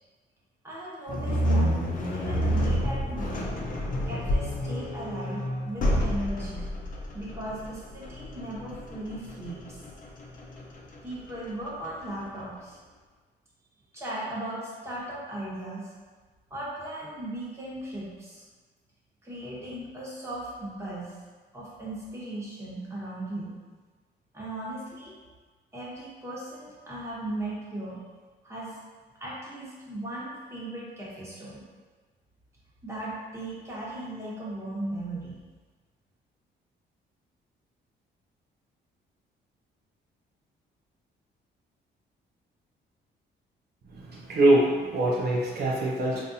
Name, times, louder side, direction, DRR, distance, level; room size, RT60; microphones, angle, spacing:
voice 1, 0.6-1.8 2.1-3.6 4.0-6.6 7.1-9.8 11.0-12.8 13.9-15.9 16.5-18.4 19.2-21.1 21.5-23.6 24.3-25.1 25.7-28.0 28.4-28.8 29.2-31.6 32.8-35.3, right 1 dB, 15° right, -7 dB, 1.2 m, -37 dB
sound 1, 1.1-12.2, equal, 45° left, 0.6 m, -29 dB
voice 2, 43.9-46.2, right 1 dB, 55° right, -4 dB, 0.5 m, -23 dB
3.9 x 2.5 x 2.7 m, 1.4 s
cardioid pair, 90°, 20 cm